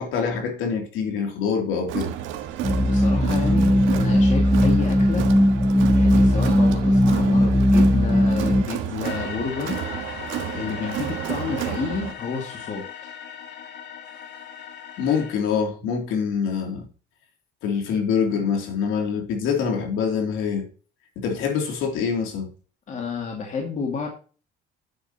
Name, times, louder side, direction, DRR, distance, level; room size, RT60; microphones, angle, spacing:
voice 1, 0.0-2.1 15.0-16.8 17.6-20.7 21.2-22.5, left 6 dB, 80° left, 3.1 m, -25 dB
Crowd, 1.9-12.1, right 11 dB, 75° right, 1.5 m, -31 dB
sound 1, 2.6-8.6, left 1 dB, ahead, 0.7 m, -18 dB
voice 2, 2.8-5.3 5.9-9.8 10.5-13.1 22.9-24.1, left 5 dB, 35° left, 2.2 m, -30 dB
sound 2, 9.0-15.3, left 8 dB, 60° left, 2.0 m, -38 dB
10.0 x 8.1 x 2.9 m
cardioid pair, 145°, 20 cm